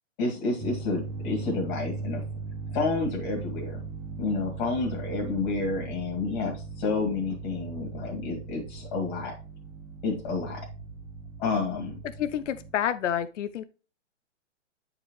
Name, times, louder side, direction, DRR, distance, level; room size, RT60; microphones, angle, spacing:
voice 1, 0.2-2.2 2.7-3.8 4.2-9.3 10.0-10.7 11.4-12.0, left 3 dB, 40° left, 1 dB, 2.3 m, -30 dB
sound 1, 0.6-12.7, right 3 dB, 10° right, 0.4 m, -38 dB
voice 2, 12.2-13.6, left 10 dB, 75° left, 13 dB, 0.6 m, -29 dB
8.4 x 4.8 x 3.1 m, 0.32 s
hypercardioid pair, 145°, 36 cm